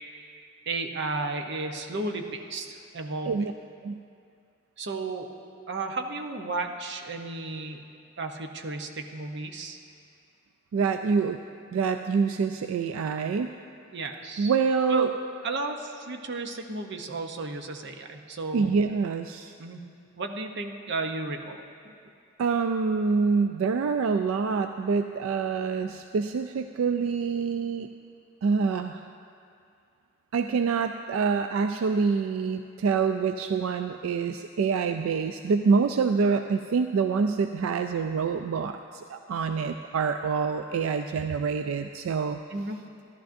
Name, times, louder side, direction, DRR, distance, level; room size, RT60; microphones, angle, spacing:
voice 1, 0.7-3.4 4.8-5.3 5.7-7.8 8.2-9.8 13.9-14.5 14.9-15.1 15.4-18.7 19.6-19.8 20.2-21.6 42.5-42.8, right 3 dB, 60° right, 4 dB, 0.7 m, -33 dB
voice 2, 10.7-11.4 11.7-13.5 14.4-15.1 18.5-19.5 22.4-27.9 28.4-29.0 30.3-42.4, right 5 dB, 80° right, 7 dB, 0.3 m, -26 dB
14.0 x 12.0 x 2.6 m, 2.4 s
head